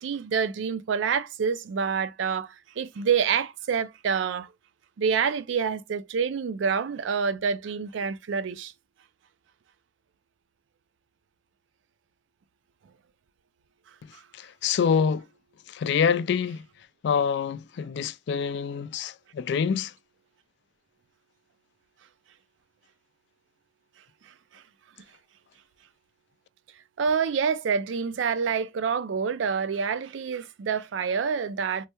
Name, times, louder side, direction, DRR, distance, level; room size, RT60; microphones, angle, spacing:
voice 1, 0.0-4.5 5.0-8.7 14.1-14.2 24.3-24.6 27.0-31.9, right 6 dB, 85° right, 0.4 m, -27 dB
voice 2, 14.3-15.2 15.7-16.6 17.0-19.9, left 6 dB, 65° left, 0.3 m, -26 dB
3.2 x 2.2 x 2.9 m
head